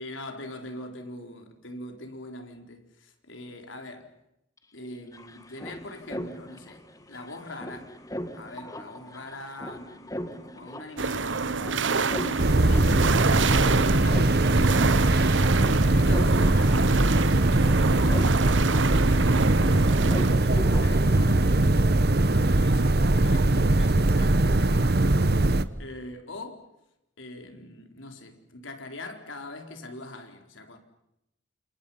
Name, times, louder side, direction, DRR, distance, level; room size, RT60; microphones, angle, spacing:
voice 1, 0.0-4.1 4.7-7.9 8.3-14.4 15.8-16.9 17.9-18.3 18.7-19.8 20.4-21.9 22.3-25.0 25.8-26.7 27.2-30.8, left 2 dB, 90° left, 4.1 m, -42 dB
sound 1, 4.6-4.7 4.8-21.6, equal, 20° left, 1.9 m, -40 dB
sound 2, 11.0-20.3, right 4 dB, 80° right, 1.0 m, -27 dB
sound 3, 12.4-25.6, right 2 dB, 55° right, 1.1 m, -21 dB
29.5 x 27.5 x 5.7 m
head